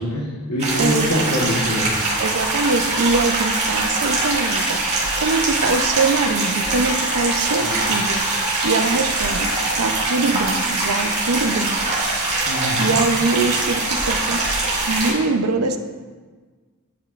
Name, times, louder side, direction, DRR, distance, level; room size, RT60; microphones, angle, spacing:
voice 1, 0.0-2.0 7.6-7.9 12.4-13.0, equal, 80° left, -5 dB, 1.2 m, -24 dB
sound 1, 0.6-15.1, right 2 dB, 30° right, 1.9 m, -22 dB
voice 2, 0.8-1.2 2.2-4.8 5.2-8.2 8.6-11.8 12.2-14.4 14.8-15.8, right 3 dB, 75° right, 8 dB, 0.6 m, -23 dB
10.0 x 7.8 x 2.5 m, 1.4 s
head